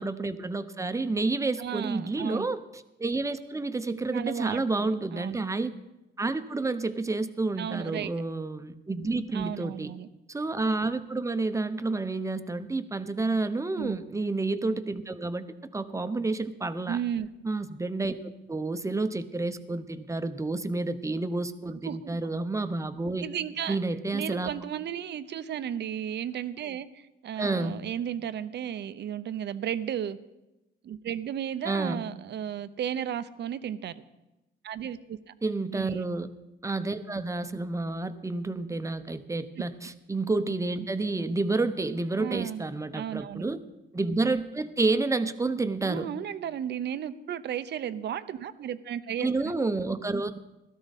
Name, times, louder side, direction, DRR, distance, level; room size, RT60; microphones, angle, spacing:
voice 1, 0.0-5.7 6.2-9.9 10.3-15.5 15.7-17.0 17.4-18.2 18.5-23.3 23.7-24.5 27.4-27.7 31.6-32.0 35.4-36.3 36.6-43.6 43.9-46.1 49.2-50.4, right 3 dB, 15° right, 11 dB, 0.8 m, -29 dB
voice 2, 1.6-2.5 4.1-5.4 7.6-8.1 9.3-10.1 13.8-14.1 16.9-17.3 21.8-22.2 23.2-23.8 24.1-30.2 30.8-34.0 34.6-35.2 35.7-36.0 42.2-42.6 42.9-43.4 45.8-49.5, right 9 dB, 60° right, 13 dB, 0.7 m, -34 dB
16.5 x 13.0 x 4.2 m, 0.98 s
cardioid pair, 90°, 20 cm